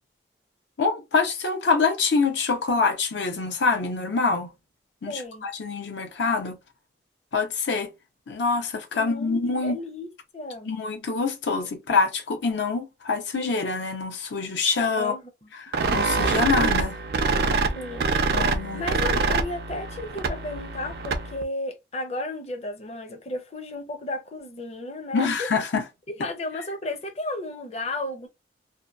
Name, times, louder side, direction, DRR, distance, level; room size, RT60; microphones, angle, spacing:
voice 1, 0.8-4.5 5.0-6.6 7.3-7.9 8.3-9.8 10.7-15.1 15.5-17.0 18.3-18.8 25.1-25.8, left 4 dB, 80° left, 0.5 m, -25 dB
voice 2, 5.0-5.5 8.9-10.1 10.3-10.7 15.0-15.2 17.8-18.1 18.7-25.5 26.1-28.3, left 2 dB, 35° left, 0.5 m, -33 dB
sound 1, 15.7-21.4, right 4 dB, 60° right, 0.4 m, -25 dB
2.7 x 2.2 x 2.2 m
head